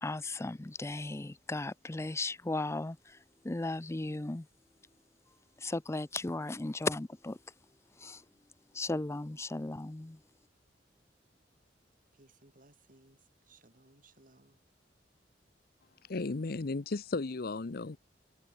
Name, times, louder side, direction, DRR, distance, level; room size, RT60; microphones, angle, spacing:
voice 1, 0.0-3.2 3.4-4.5 5.6-7.4 8.0-8.2 8.7-10.2, left 2 dB, 15° left, 0.5 m, -36 dB
voice 2, 12.1-14.6, right 2 dB, 50° right, 4.7 m, -62 dB
voice 3, 16.1-18.0, left 3 dB, 55° left, 0.7 m, -35 dB
head